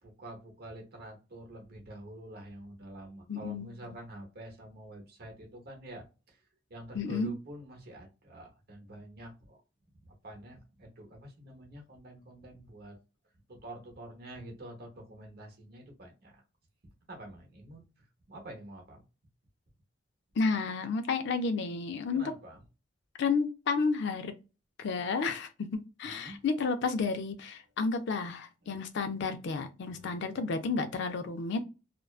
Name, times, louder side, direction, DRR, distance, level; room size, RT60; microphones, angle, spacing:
voice 1, 0.0-6.4 6.7-9.6 10.0-13.0 13.5-16.4 17.1-17.8 18.3-19.0 22.1-22.6 26.0-26.4 28.6-28.8 29.8-30.2, right 1 dB, 55° right, 0.8 m, -47 dB
voice 2, 3.3-4.0 6.9-7.3 20.4-22.3 23.2-24.3 24.8-25.7 26.0-31.6, left 4 dB, 65° left, 0.4 m, -31 dB
2.5 x 2.2 x 2.3 m
head